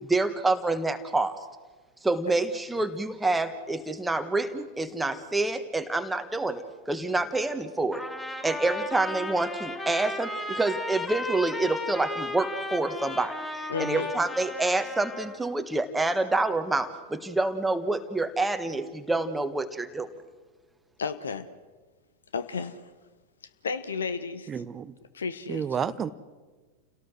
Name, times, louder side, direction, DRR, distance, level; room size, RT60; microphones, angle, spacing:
voice 1, 0.0-1.4 2.0-8.0 8.4-20.1, right 2 dB, 5° right, 8 dB, 1.4 m, -27 dB
Trumpet, 7.9-15.4, left 2 dB, 10° left, 3.6 m, -35 dB
voice 2, 13.7-14.1 21.0-21.5 22.3-22.8 23.6-24.5 25.1-26.0, left 5 dB, 70° left, 13 dB, 1.1 m, -33 dB
voice 3, 24.5-24.9 25.5-26.1, right 7 dB, 25° right, 16 dB, 0.8 m, -30 dB
29.0 x 18.0 x 6.3 m, 1.3 s
figure-of-eight pair, 90°, 0 cm